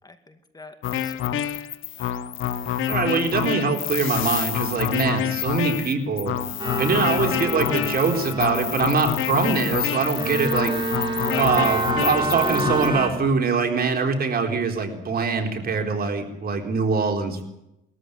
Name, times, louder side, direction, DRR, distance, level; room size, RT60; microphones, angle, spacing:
voice 1, 0.0-1.4 2.0-2.3 11.2-11.5, left 2 dB, 20° left, 7 dB, 2.4 m, -42 dB
sound 1, 0.8-12.9, left 11 dB, 85° left, 1.2 m, -27 dB
voice 2, 2.9-6.4 6.8-10.7 11.4-17.4, right 4 dB, 50° right, 3 dB, 4.1 m, -23 dB
sound 2, 6.6-13.1, right 2 dB, 25° right, 5.3 m, -28 dB
21.5 x 14.0 x 9.9 m, 0.87 s
cardioid pair, 90°, 20 cm